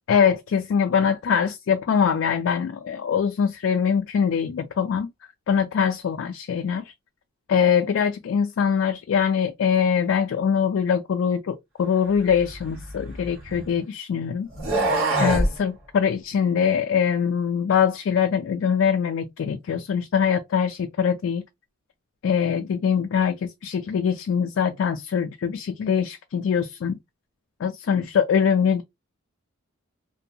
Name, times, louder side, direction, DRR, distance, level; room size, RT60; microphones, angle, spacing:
voice 1, 0.1-5.1 5.5-6.9 7.5-14.5 15.2-21.4 22.2-27.0 27.6-28.8, left 7 dB, 60° left, 0.3 m, -23 dB
sound 1, 12.3-13.8 14.5-15.5, right 1 dB, 75° right, 1.4 m, -25 dB
2.6 x 2.2 x 2.6 m
head